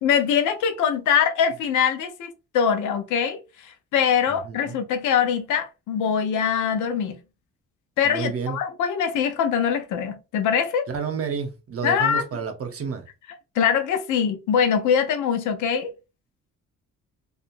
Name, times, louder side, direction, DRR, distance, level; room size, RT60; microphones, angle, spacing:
voice 1, 0.0-3.4 3.6-7.2 8.0-10.9 11.8-12.2 13.6-15.9, left 7 dB, 80° left, 0.6 m, -23 dB
voice 2, 4.3-4.8 8.0-8.6 10.9-13.0, right 6 dB, 50° right, 0.8 m, -30 dB
2.7 x 2.5 x 2.5 m
cardioid pair, 90°, 30 cm